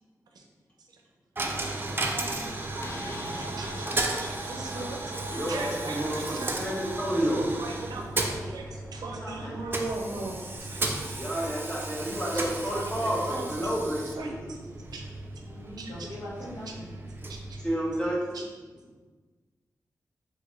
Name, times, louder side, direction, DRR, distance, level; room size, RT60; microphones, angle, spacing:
Coin (dropping), 1.4-18.3, right 2 dB, 30° right, 0.4 m, -35 dB
voice 1, 1.8-6.6 7.3-11.1 12.3-13.7 14.2-14.6 14.9-15.0 15.8-16.1 17.3-17.6 18.3-18.4, right 2 dB, 85° right, 1 dB, 0.5 m, -40 dB
Slam, 2.0-10.6, left 2 dB, 40° left, 0.5 m, -49 dB
voice 2, 5.3-7.5 11.2-14.4 17.6-18.4, equal, 15° left, -5 dB, 1.1 m, -30 dB
voice 3, 9.1-9.5 10.0-10.3 15.4-16.9, left 1 dB, 75° left, -8 dB, 1.5 m, -41 dB
3.0 x 2.6 x 3.7 m, 1.4 s
cardioid pair, 60°, 7 cm